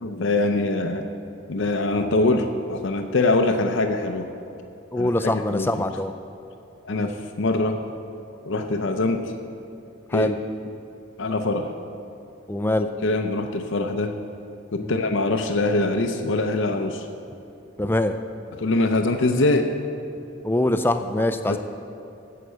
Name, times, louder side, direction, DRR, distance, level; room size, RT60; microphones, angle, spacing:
voice 1, 0.0-1.0 1.5-4.3 4.9-5.8 6.8-7.8 8.4-9.3 10.1-10.3 11.2-11.7 12.8-14.2 14.7-17.1 18.5-19.8 21.5-21.6, left 2 dB, 75° left, 5 dB, 0.6 m, -23 dB
voice 2, 4.9-6.1 6.9-7.1 10.1-10.3 12.5-12.9 14.8-14.9 17.8-18.1 20.4-21.6, left 1 dB, 10° left, 9 dB, 0.4 m, -23 dB
11.0 x 7.4 x 6.8 m, 2.8 s
head